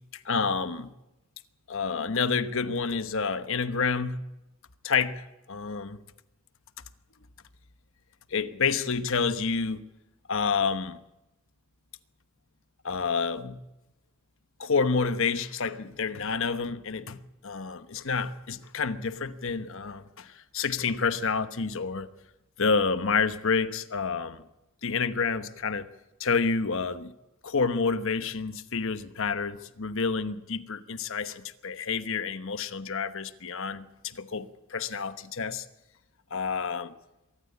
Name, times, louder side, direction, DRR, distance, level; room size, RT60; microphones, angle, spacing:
voice 1, 0.1-0.9 1.7-4.2 4.8-6.0 8.3-9.8 10.3-11.0 12.8-13.6 14.6-22.1 22.6-24.4 24.8-25.9 26.2-27.1 27.4-35.6 36.3-36.9, left 5 dB, 65° left, 1.1 m, -29 dB
23.5 x 13.5 x 8.6 m
head